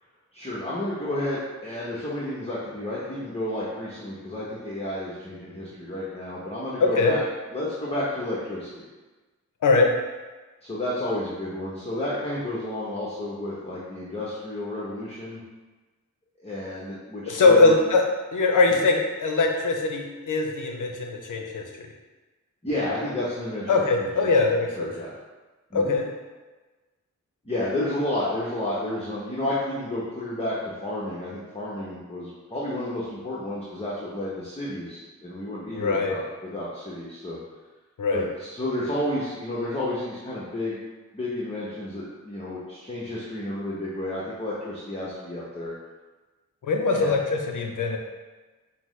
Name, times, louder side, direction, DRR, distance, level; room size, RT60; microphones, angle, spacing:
voice 1, 0.3-7.2 7.5-8.8 10.6-15.4 16.4-17.8 18.7-18.8 22.6-24.3 24.7-25.1 25.7-26.0 27.4-37.4 38.1-40.8 41.1-45.7 46.9-47.2, left 1 dB, 20° left, -7 dB, 0.8 m, -31 dB
voice 2, 6.8-7.1 9.6-9.9 17.3-18.1 18.3-21.6 23.7-24.9 25.7-26.0 35.8-36.1 38.0-38.3 46.6-48.0, left 3 dB, 80° left, 2 dB, 0.6 m, -21 dB
5.8 x 2.1 x 3.1 m, 1.2 s
cardioid pair, 60°, 31 cm